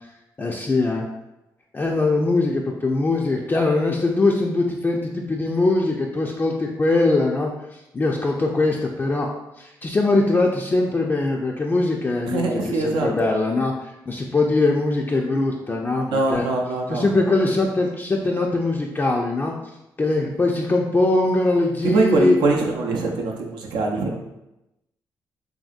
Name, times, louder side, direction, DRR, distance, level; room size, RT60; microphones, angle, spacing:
voice 1, 0.4-1.1 1.7-7.5 7.9-9.3 9.6-13.7 14.1-16.4 16.9-19.5 20.0-22.4, left 2 dB, 25° left, -1 dB, 0.4 m, -21 dB
voice 2, 12.3-13.1 16.1-17.1 21.8-24.2, right 2 dB, 85° right, 1 dB, 0.5 m, -22 dB
2.8 x 2.7 x 2.4 m, 0.92 s
cardioid pair, 65°, 8 cm